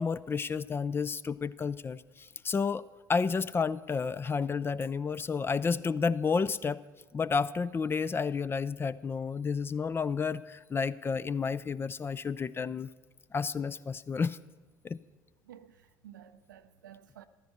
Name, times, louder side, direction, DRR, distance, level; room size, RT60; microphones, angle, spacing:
voice 1, 0.0-2.8 3.1-6.8 7.1-12.9 13.3-14.4 14.8-15.0, left 5 dB, 20° left, 0.4 m, -31 dB
voice 2, 15.4-17.3, right 10 dB, 75° right, 0.5 m, -52 dB
14.5 x 12.5 x 4.1 m
figure-of-eight pair, 60°, 10 cm